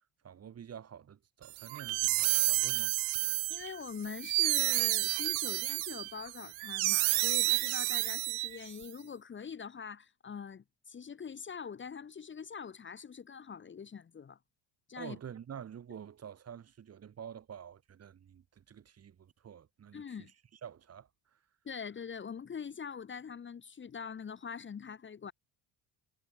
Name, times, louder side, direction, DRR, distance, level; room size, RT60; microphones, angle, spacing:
voice 1, 0.2-3.3 15.0-20.2 20.5-21.1, right 8 dB, 30° right, 2.2 m, -48 dB
sound 1, 1.6-8.8, right 20 dB, 75° right, 1.7 m, -30 dB
voice 2, 3.5-14.4 14.9-15.2 19.9-20.3 21.6-25.3, left 6 dB, 25° left, 1.6 m, -43 dB
cardioid pair, 160°, 47 cm